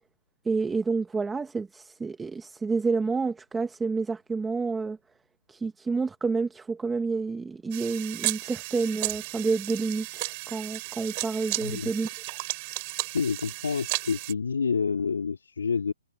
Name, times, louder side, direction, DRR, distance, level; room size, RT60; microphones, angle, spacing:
voice 1, 0.4-5.0 5.5-12.1, right 4 dB, 5° right, 0.8 m, -29 dB
sound 1, 7.7-14.3, right 25 dB, 20° right, 3.6 m, -34 dB
voice 2, 11.6-11.9 12.9-15.9, left 5 dB, 85° left, 2.1 m, -28 dB
hypercardioid pair, 170°, 0 cm